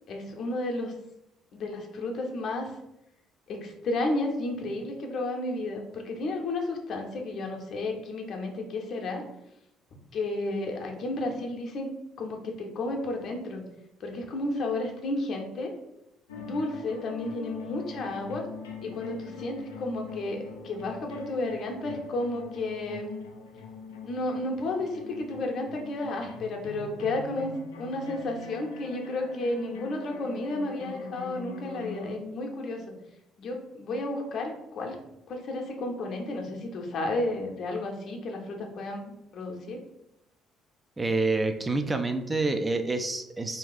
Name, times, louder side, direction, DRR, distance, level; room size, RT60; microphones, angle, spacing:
voice 1, 0.1-0.9 1.5-2.7 3.5-9.2 10.1-11.9 12.2-13.6 14.0-15.7 16.4-18.5 18.8-23.1 24.0-32.8 33.4-35.0 35.3-39.8, left 2 dB, 55° left, 1 dB, 0.7 m, -32 dB
sound 1, 16.3-32.1, left 4 dB, 80° left, 0.4 m, -43 dB
voice 2, 41.0-43.6, right 3 dB, 20° right, 7 dB, 0.4 m, -27 dB
2.7 x 2.4 x 3.9 m, 0.86 s
figure-of-eight pair, 50°, 0 cm